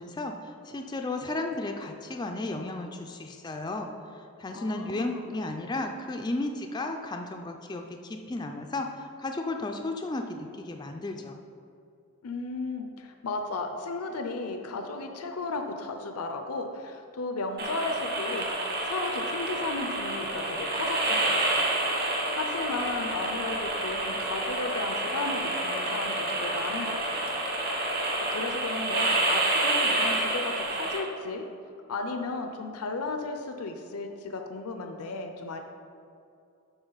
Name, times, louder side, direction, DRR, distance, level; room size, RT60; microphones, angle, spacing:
voice 1, 0.0-11.4, left 2 dB, 20° left, 4 dB, 0.3 m, -34 dB
voice 2, 4.5-5.3 12.2-18.5 18.8-21.7 22.4-27.4 28.2-31.5 31.9-35.6, left 3 dB, 80° left, 5 dB, 0.6 m, -34 dB
sound 1, 17.6-31.0, right 2 dB, 45° right, 1.4 m, -29 dB
8.0 x 5.8 x 3.9 m, 2.6 s
head